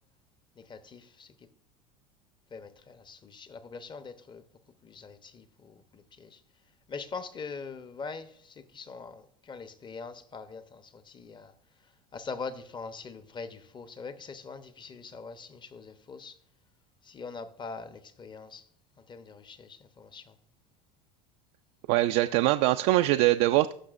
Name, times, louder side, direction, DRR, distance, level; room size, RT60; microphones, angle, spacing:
voice 1, 0.6-1.3 2.5-4.4 4.8-6.4 6.9-11.5 12.1-16.4 17.0-18.6 19.1-20.3, left 4 dB, 25° left, 0.8 m, -43 dB
voice 2, 21.9-23.7, right 16 dB, 65° right, 0.4 m, -23 dB
16.5 x 6.0 x 2.5 m
hypercardioid pair, 85°, 18 cm